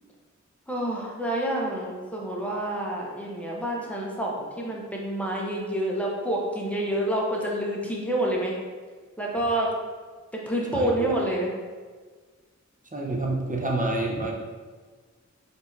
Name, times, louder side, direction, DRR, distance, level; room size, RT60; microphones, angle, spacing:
voice 1, 0.7-8.5 9.2-9.7 10.3-11.5, right 1 dB, 5° left, -3 dB, 0.8 m, -28 dB
voice 2, 10.7-11.1 12.9-14.3, right 2 dB, 25° right, -2 dB, 0.7 m, -28 dB
4.4 x 3.3 x 2.7 m, 1.4 s
wide cardioid pair, 50°, 29 cm